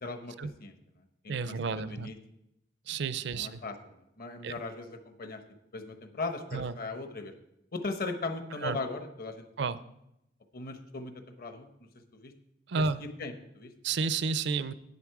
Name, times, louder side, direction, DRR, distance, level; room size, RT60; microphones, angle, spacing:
voice 1, 0.0-0.3 0.6-0.7 1.2-2.2 3.3-3.8 4.2-5.4 5.7-7.3 7.7-9.7 10.5-11.1 11.4-12.3 12.8-13.7, left 3 dB, 50° left, 8 dB, 1.0 m, -38 dB
voice 2, 1.3-2.1 2.9-3.6 4.4-4.5 6.5-6.7 8.6-8.8 9.6-9.8 12.7-13.0 13.8-14.7, right 4 dB, 65° right, 14 dB, 0.5 m, -31 dB
9.6 x 8.9 x 4.7 m, 0.83 s
head